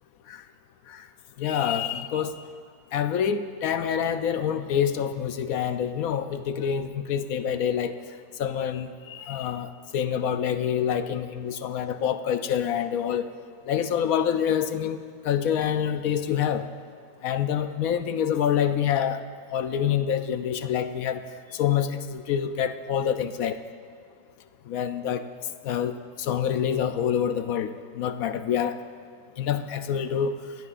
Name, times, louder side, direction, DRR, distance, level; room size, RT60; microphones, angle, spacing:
voice 1, 1.4-2.3 2.9-7.9 8.4-13.3 13.7-16.7 17.2-19.2 19.5-21.2 21.5-23.6 24.7-25.2 25.6-28.8 29.4-30.4, left 8 dB, 70° left, 9 dB, 0.9 m, -26 dB
22.5 x 16.5 x 2.5 m, 2.2 s
omnidirectional pair, 1.9 m